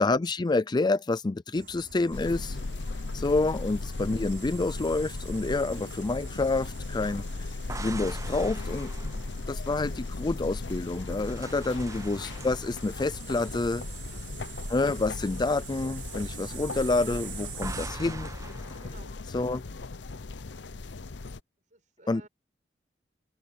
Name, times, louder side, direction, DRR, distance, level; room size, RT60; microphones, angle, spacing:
voice 1, 0.0-2.6 3.1-7.2 7.8-8.9 9.5-13.8 14.7-18.3 19.3-19.6 22.1-22.2, left 3 dB, 25° left, 0.4 m, -28 dB
sound 1, 1.5-17.9, right 5 dB, 80° right, 3.8 m, -45 dB
sound 2, 2.1-21.4, left 3 dB, 85° left, 0.8 m, -37 dB
sound 3, 7.7-10.4 10.9-14.3 14.6-14.9 17.6-19.2, right 3 dB, 20° right, 0.8 m, -43 dB
voice 2, 14.1-14.4 18.8-19.2 21.7-22.3, right 2 dB, 45° right, 5.7 m, -55 dB
open air
head